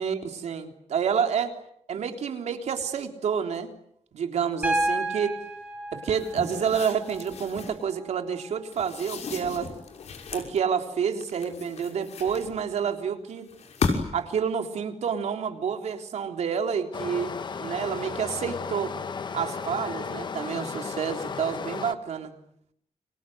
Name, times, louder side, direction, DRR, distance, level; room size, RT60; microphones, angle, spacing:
voice 1, 0.0-1.5 1.9-3.7 4.1-5.4 5.9-9.7 10.3-13.5 14.1-18.9 19.3-22.3, right 7 dB, 80° right, 5 dB, 3.5 m, -29 dB
Piano, 4.6-8.6 10.2-10.3, right 2 dB, 10° right, 4.5 m, -32 dB
sound 1, 6.1-7.8 8.7-10.6 11.2-12.8 13.5-14.3, left 4 dB, 80° left, 6.0 m, -34 dB
Stream, 16.9-21.9, left 5 dB, 40° left, 1.3 m, -34 dB
30.0 x 25.0 x 8.0 m, 0.73 s
wide cardioid pair, 165°, 11 cm